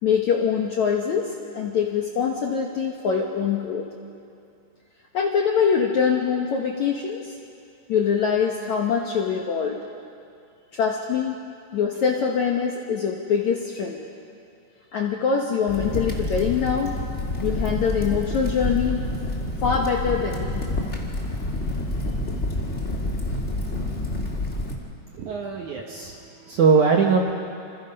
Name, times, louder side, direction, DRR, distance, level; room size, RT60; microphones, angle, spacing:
voice 1, 0.0-3.9 5.1-7.3 7.9-9.8 10.7-11.4 11.7-14.0 14.9-16.9 17.4-19.0 19.6-20.7, left 6 dB, 65° left, 0 dB, 1.9 m, -24 dB
Crackle, 15.7-24.7, left 1 dB, 25° left, 1.5 m, -28 dB
voice 2, 25.1-27.3, right 5 dB, 65° right, 1 dB, 2.0 m, -21 dB
27.5 x 27.0 x 5.4 m, 2.5 s
omnidirectional pair, 5.1 m